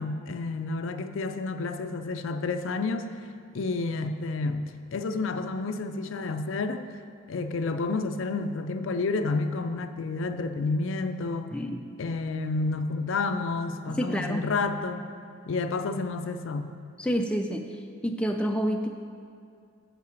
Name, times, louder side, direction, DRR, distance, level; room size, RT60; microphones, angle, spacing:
voice 1, 0.0-3.1 3.5-4.6 4.9-6.9 7.3-11.5 12.0-15.1 15.5-16.8, left 3 dB, 65° left, 8 dB, 0.4 m, -30 dB
voice 2, 11.5-11.8 13.9-14.5 17.0-17.7 18.0-18.9, equal, 5° left, 3 dB, 0.3 m, -28 dB
7.5 x 5.7 x 6.3 m, 2.3 s
head